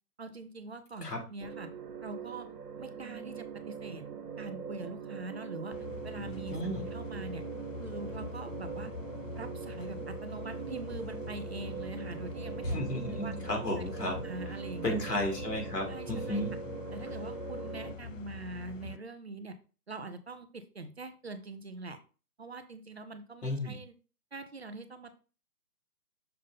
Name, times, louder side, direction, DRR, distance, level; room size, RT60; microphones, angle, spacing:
voice 1, 0.2-1.7 2.0-2.5 2.8-4.0 4.4-6.6 6.9-7.4 7.8-8.9 9.4-12.8 13.1-13.3 14.0-14.9 15.9-16.4 16.9-19.6 19.9-22.0 22.4-23.9 24.3-25.2, right 3 dB, 45° right, 9 dB, 0.6 m, -43 dB
sound 1, 1.4-17.9, right 6 dB, 70° right, 1.4 m, -42 dB
sound 2, 5.7-19.0, left 5 dB, 55° left, 0.6 m, -44 dB
voice 2, 6.5-7.0 12.6-16.6 23.4-23.8, left 1 dB, 80° left, 1 dB, 2.8 m, -34 dB
6.6 x 3.6 x 4.0 m, 0.35 s
hypercardioid pair, 170°, 47 cm